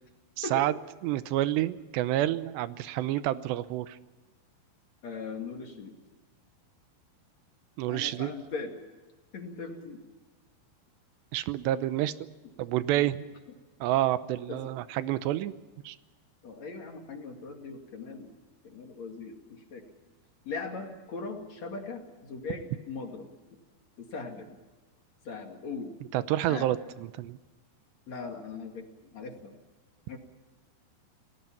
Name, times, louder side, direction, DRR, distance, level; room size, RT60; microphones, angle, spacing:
voice 1, 0.4-0.7 1.0-4.0 7.8-8.3 11.3-12.1 12.6-13.3 13.8-15.5 15.8-16.0 26.1-27.4, right 14 dB, 90° right, 13 dB, 3.1 m, -28 dB
voice 2, 5.0-6.0 7.9-8.8 9.3-10.0 14.5-14.7 16.4-18.3 18.6-19.9 20.4-23.3 24.0-24.5 25.2-25.9 26.5-26.7 28.1-29.5 30.1-30.2, left 4 dB, 45° left, 3 dB, 2.9 m, -39 dB
29.0 x 19.0 x 5.8 m, 1.2 s
omnidirectional pair, 4.9 m